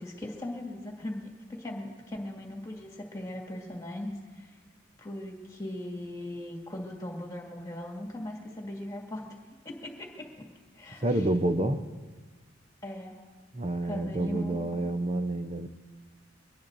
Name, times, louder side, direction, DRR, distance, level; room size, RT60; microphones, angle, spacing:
voice 1, 0.0-4.5 5.0-9.3 9.6-10.5 10.7-11.2 12.8-13.2 13.8-14.9, left 1 dB, 15° left, 0 dB, 2.1 m, -39 dB
voice 2, 11.0-11.8 13.5-15.7, right 1 dB, 30° right, 8 dB, 0.7 m, -28 dB
23.5 x 19.5 x 2.7 m, 1.4 s
head